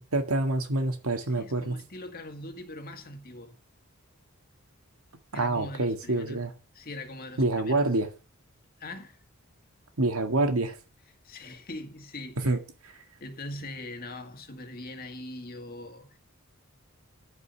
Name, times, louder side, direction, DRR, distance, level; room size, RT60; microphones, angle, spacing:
voice 1, 0.0-1.7 5.3-6.5 7.4-8.1 10.0-10.8 12.4-12.9, right 2 dB, 90° right, 2.0 m, -27 dB
voice 2, 1.4-3.5 5.3-6.5 6.7-7.8 8.8-9.2 11.2-12.6 13.2-16.2, left 1 dB, 45° left, 2.1 m, -41 dB
13.5 x 5.5 x 6.9 m
head